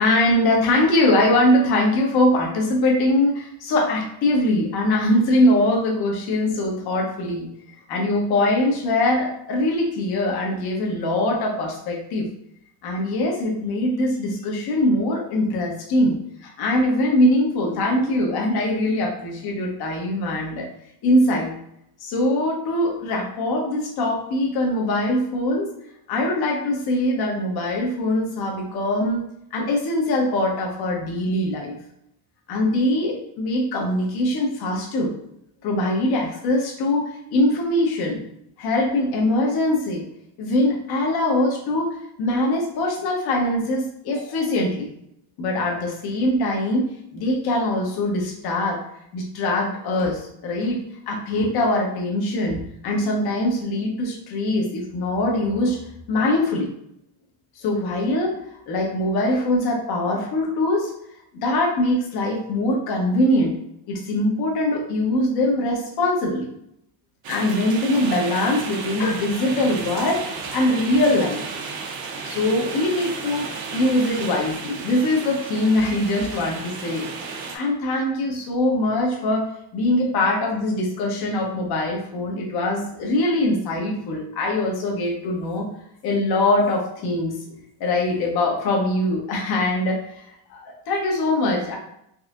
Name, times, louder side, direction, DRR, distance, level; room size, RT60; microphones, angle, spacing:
voice 1, 0.0-12.3 12.8-16.2 16.4-20.7 21.0-21.5 22.0-25.7 26.1-29.2 29.5-31.8 32.5-35.1 35.6-38.2 38.6-40.0 40.4-44.9 45.4-48.8 49.1-55.8 56.1-56.7 57.6-58.3 58.7-60.9 61.3-63.6 63.9-66.5 67.3-70.3 70.5-71.6 72.3-77.1 77.5-79.4 79.7-85.6 86.0-90.2 90.5-91.8, left 1 dB, 55° left, -1 dB, 1.0 m, -22 dB
sound 1, 67.2-77.6, right 4 dB, 70° right, 0.8 m, -33 dB
4.1 x 2.7 x 2.4 m, 0.74 s
cardioid pair, 130°, 46 cm